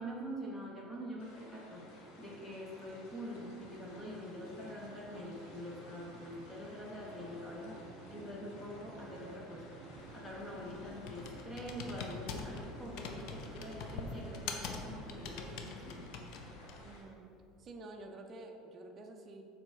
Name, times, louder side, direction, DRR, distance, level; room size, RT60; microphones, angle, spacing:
voice 1, 0.0-9.6 10.0-16.1, equal, 10° left, -3 dB, 0.9 m, -45 dB
sound 1, 0.7-17.4, right 3 dB, 50° right, 1.2 m, -55 dB
sound 2, 1.2-17.0, left 2 dB, 75° left, 1.6 m, -57 dB
voice 2, 8.4-8.7 16.8-17.3 17.6-19.4, right 2 dB, 25° right, 3 dB, 0.6 m, -50 dB
Computer keyboard, 10.0-17.0, left 4 dB, 55° left, 0.7 m, -45 dB
7.0 x 4.5 x 4.9 m, 2.5 s
cardioid pair, 165°, 0 cm